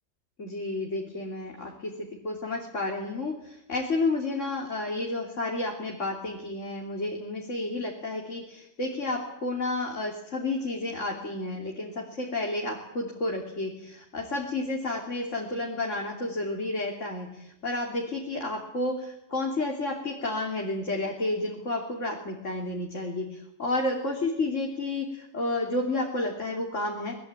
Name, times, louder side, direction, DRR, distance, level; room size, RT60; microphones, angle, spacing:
voice 1, 0.4-27.1, left 2 dB, 80° left, -1 dB, 3.6 m, -31 dB
23.5 x 20.5 x 8.9 m, 0.81 s
omnidirectional pair, 1.3 m